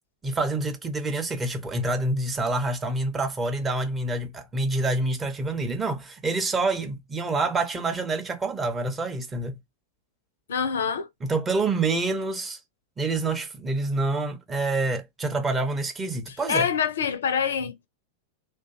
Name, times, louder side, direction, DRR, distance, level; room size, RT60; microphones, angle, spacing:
voice 1, 0.2-9.6 11.2-12.6 13.0-16.7, right 2 dB, 15° right, 0.7 m, -27 dB
voice 2, 10.5-11.1 16.5-17.9, left 7 dB, 65° left, 0.4 m, -25 dB
2.5 x 2.2 x 2.6 m
figure-of-eight pair, 90°, 0 cm